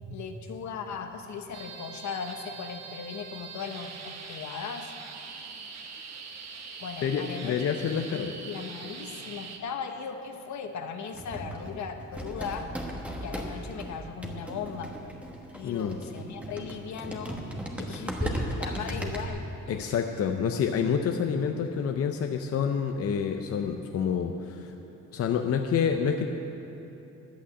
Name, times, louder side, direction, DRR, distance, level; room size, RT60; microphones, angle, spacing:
voice 1, 0.1-4.9 6.8-7.8 8.1-12.7 13.2-15.0 15.5-17.5 17.8-19.9, left 6 dB, 70° left, 6 dB, 1.0 m, -38 dB
sound 1, 1.5-9.6, right 5 dB, 60° right, 1.2 m, -43 dB
voice 2, 7.0-8.4 15.6-16.0 19.7-24.7 25.1-26.3, left 7 dB, 50° left, 4 dB, 0.6 m, -28 dB
sound 2, 11.1-19.3, right 1 dB, 5° right, 1.2 m, -36 dB
11.5 x 8.5 x 8.4 m, 3.0 s
cardioid pair, 150°, 30 cm